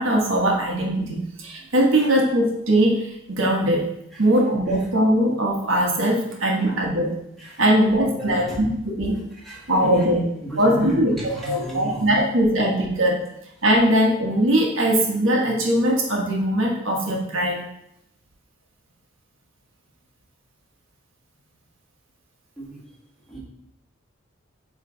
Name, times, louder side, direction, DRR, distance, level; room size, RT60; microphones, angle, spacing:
voice 1, 0.0-3.9 4.2-7.2 7.6-8.7 8.9-9.2 9.7-10.2 10.6-13.2 13.6-17.6, right 1 dB, 70° right, -1 dB, 1.3 m, -20 dB
voice 2, 8.0-8.6 9.4-12.0 22.6-22.8 23.3-23.4, right 1 dB, ahead, -7 dB, 1.8 m, -33 dB
8.2 x 3.3 x 3.8 m, 0.80 s
head